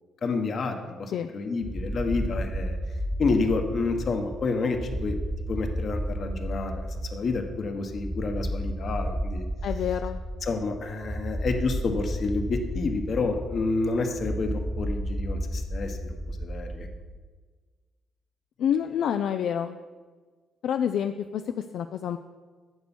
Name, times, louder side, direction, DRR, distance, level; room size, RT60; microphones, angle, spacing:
voice 1, 0.2-2.8 3.2-5.2 5.5-9.5 10.4-16.9, left 3 dB, 50° left, 5 dB, 1.3 m, -29 dB
sound 1, 1.6-17.2, equal, 5° right, 0.6 m, -32 dB
voice 2, 9.6-10.2 18.6-19.8 20.6-22.2, left 9 dB, 75° left, 8 dB, 0.4 m, -28 dB
9.5 x 6.9 x 6.1 m, 1.5 s
cardioid pair, 90°, 0 cm